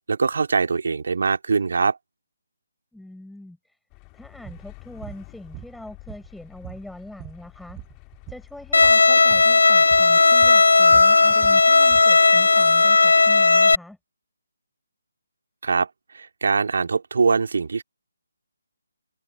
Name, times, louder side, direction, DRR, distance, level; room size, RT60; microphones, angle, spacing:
voice 1, 0.1-2.0 15.6-15.9 16.1-17.8, right 4 dB, 55° right, 2.7 m, -22 dB
voice 2, 2.9-3.8 4.1-7.8 8.3-14.0, left 1 dB, ahead, 7.7 m, -42 dB
sound 1, 3.9-9.6, left 30 dB, 20° left, 3.4 m, -48 dB
sound 2, 4.4-4.6 5.0-5.2 5.5-6.4 6.6-8.5 8.7-9.0 9.3-9.5 9.9-10.1 10.4-12.1, right 20 dB, 15° right, 1.1 m, -41 dB
Bowed string instrument, 8.7-13.7, left 3 dB, 65° left, 0.8 m, -15 dB
figure-of-eight pair, 145°, 0 cm